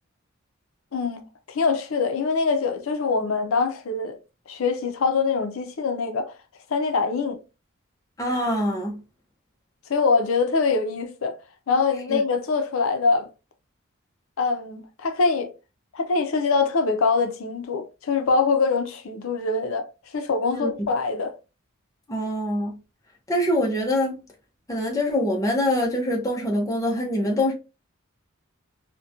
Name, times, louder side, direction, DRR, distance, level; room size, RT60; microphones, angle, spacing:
voice 1, 0.9-4.2 4.5-6.3 6.7-7.4 9.9-11.4 11.7-13.3 14.4-15.5 15.9-19.9 20.1-21.3, left 4 dB, 75° left, 0.5 m, -24 dB
voice 2, 8.2-9.0 12.1-12.2 20.5-20.7 22.1-22.8 23.3-24.2 24.7-27.5, left 1 dB, 15° left, 0.5 m, -24 dB
2.8 x 2.1 x 2.4 m
head